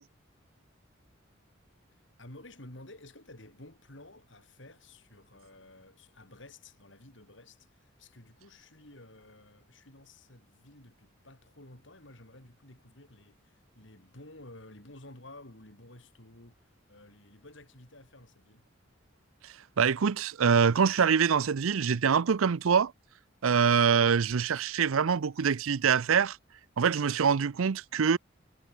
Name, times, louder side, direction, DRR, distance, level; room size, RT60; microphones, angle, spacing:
voice 1, 2.2-18.6 28.0-28.1, left 1 dB, 65° left, 4.5 m, -52 dB
voice 2, 19.8-22.9 23.4-26.4 26.8-28.2, right 6 dB, 85° right, 0.5 m, -24 dB
head